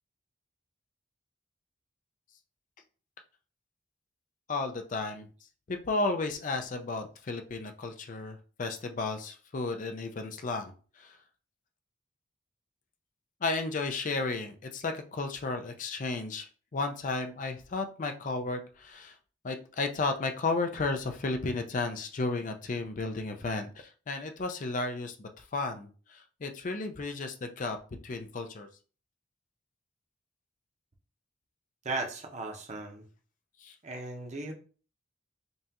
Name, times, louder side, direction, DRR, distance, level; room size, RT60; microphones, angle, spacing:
voice 1, 4.5-5.3 5.7-10.7 11.0-11.2 13.4-16.5 16.7-19.1 19.4-27.8 28.0-28.7 33.6-33.7, left 3 dB, 40° left, 5 dB, 0.5 m, -33 dB
voice 2, 31.8-33.0 33.8-34.5, right 2 dB, 35° right, 2 dB, 0.8 m, -36 dB
5.3 x 2.4 x 2.8 m, 0.38 s
head